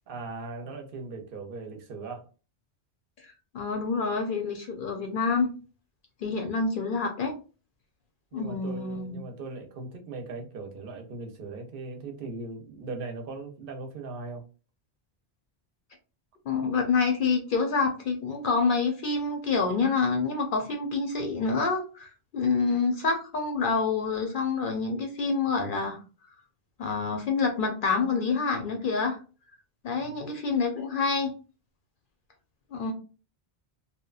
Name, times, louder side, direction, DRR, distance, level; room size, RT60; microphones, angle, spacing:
voice 1, 0.1-2.2 8.3-14.4 29.9-30.2, right 3 dB, 65° right, 4 dB, 0.8 m, -39 dB
voice 2, 3.5-5.5 6.2-7.3 8.3-9.2 16.5-26.0 26.8-29.2 29.8-31.3 32.7-32.9, left 4 dB, 65° left, 3 dB, 0.7 m, -27 dB
2.8 x 2.2 x 2.3 m, 0.35 s
omnidirectional pair, 1.0 m